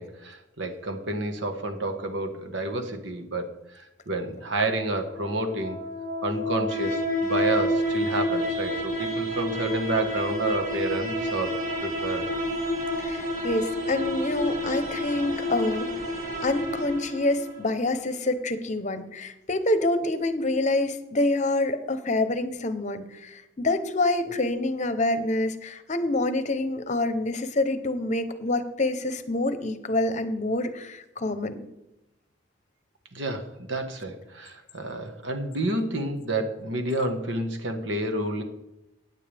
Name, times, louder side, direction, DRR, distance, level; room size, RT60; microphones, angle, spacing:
voice 1, 0.0-5.8 6.2-12.3 33.1-38.4, right 2 dB, 65° right, 5 dB, 1.5 m, -30 dB
sound 1, 4.9-17.7, left 1 dB, 40° right, 1.7 m, -29 dB
voice 2, 13.0-15.9 16.4-31.6, left 2 dB, 35° left, 10 dB, 0.9 m, -27 dB
16.5 x 9.6 x 3.5 m, 0.91 s
head